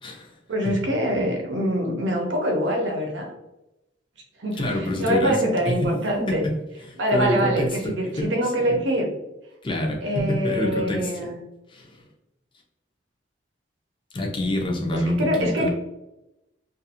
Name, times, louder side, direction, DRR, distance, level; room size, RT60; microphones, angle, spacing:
voice 1, 0.5-3.3 4.4-6.4 7.0-9.1 10.0-11.3 14.9-15.7, equal, 75° right, 0 dB, 0.7 m, -24 dB
voice 2, 4.6-5.4 5.7-5.9 6.3-6.4 6.9-8.3 8.7-8.8 9.6-11.3 11.7-12.0 14.1-15.7, left 1 dB, 25° left, -1 dB, 0.5 m, -26 dB
2.5 x 2.5 x 2.7 m, 0.94 s
head